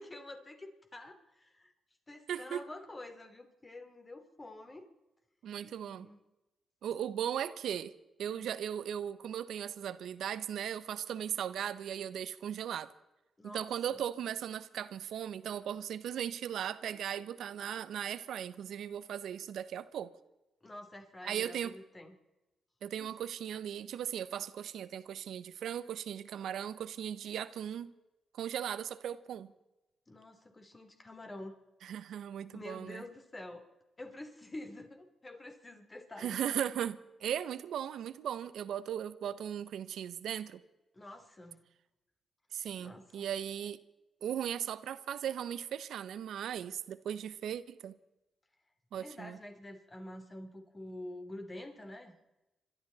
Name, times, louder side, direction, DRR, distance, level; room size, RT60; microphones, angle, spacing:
voice 1, 0.0-1.7 2.1-4.9 5.6-6.2 8.2-8.5 13.4-14.0 20.6-22.2 23.0-23.1 30.1-31.6 32.5-33.7 34.0-36.4 40.9-41.6 42.8-43.3 48.9-52.1, left 1 dB, 25° left, 3.0 m, -48 dB
voice 2, 2.3-2.6 5.4-6.1 6.8-7.9 8.2-12.9 13.4-20.1 21.2-21.7 22.8-27.9 28.3-29.5 31.8-33.0 36.2-40.6 42.5-43.8 44.2-48.0 48.9-49.4, right 9 dB, 80° right, 0.8 m, -37 dB
27.5 x 13.0 x 4.0 m
cardioid pair, 75°, 0 cm